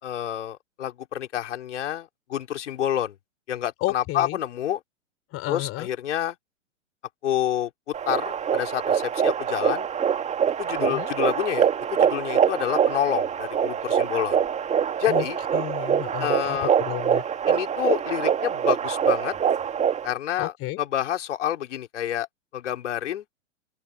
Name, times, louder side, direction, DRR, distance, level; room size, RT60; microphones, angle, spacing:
voice 1, 0.0-3.2 3.5-4.8 5.5-6.4 7.2-9.9 10.6-14.4 15.0-15.4 16.2-16.7 17.5-19.3 20.0-22.3 22.5-23.2, left 11 dB, 60° left, 4.2 m, -28 dB
voice 2, 3.8-4.4 5.3-5.9 10.7-11.1 15.1-15.3 15.5-17.3 20.4-20.8, left 20 dB, 35° left, 6.1 m, -32 dB
sound 1, 7.9-20.1, right 8 dB, 15° right, 2.1 m, -24 dB
open air
figure-of-eight pair, 105°, 39 cm